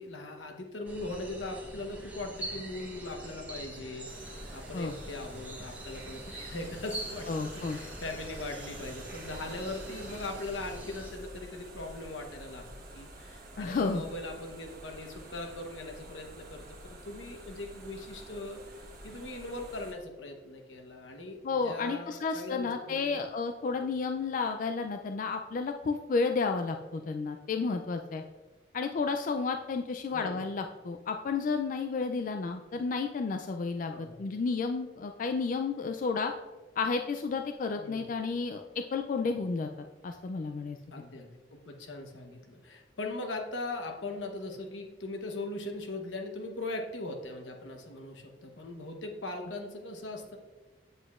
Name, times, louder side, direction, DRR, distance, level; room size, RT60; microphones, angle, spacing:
voice 1, 0.0-7.3 7.5-12.7 12.9-23.2 23.7-24.0 30.1-30.4 33.9-34.2 37.8-38.1 40.9-50.4, left 2 dB, 80° left, 3 dB, 1.0 m, -40 dB
sound 1, 0.9-11.1, right 1 dB, 10° right, 0.9 m, -44 dB
sound 2, 4.1-19.9, right 1 dB, 50° right, 1.3 m, -48 dB
voice 2, 7.3-7.8 13.6-14.0 21.4-28.2 28.7-36.3 36.8-39.7 40.0-40.8, left 4 dB, 45° left, 5 dB, 0.3 m, -32 dB
7.9 x 7.8 x 2.4 m, 1.3 s
head